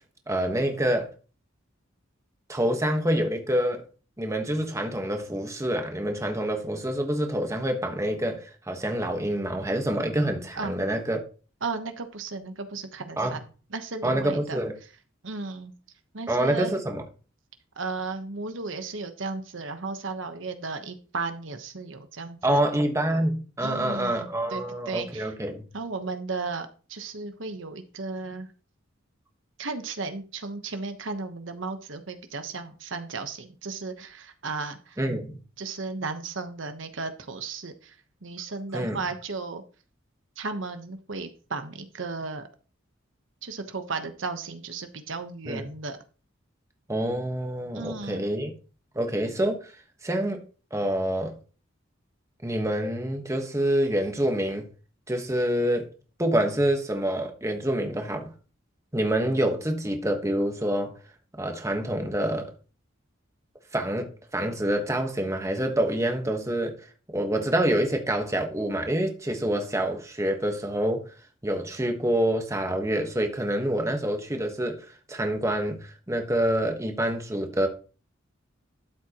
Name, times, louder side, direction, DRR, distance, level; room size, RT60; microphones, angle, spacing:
voice 1, 0.3-1.1 2.5-3.8 4.2-11.2 13.2-13.4 14.0-14.7 16.3-17.0 22.4-25.6 35.0-35.4 38.7-39.0 45.5-45.6 46.9-48.5 48.9-49.7 50.0-50.4 50.7-51.4 52.4-54.7 55.1-55.9 56.2-58.3 58.9-60.9 61.4-62.5 63.7-66.8 67.1-71.0 71.4-77.7, right 1 dB, 15° right, 1.3 m, -27 dB
voice 2, 11.6-14.6 15.2-15.7 16.1-16.7 17.8-22.6 23.6-25.3 25.7-28.5 29.6-35.0 35.6-39.6 40.4-42.5 43.4-46.0 47.7-48.2, right 4 dB, 70° right, 1.1 m, -35 dB
12.5 x 7.6 x 3.0 m
head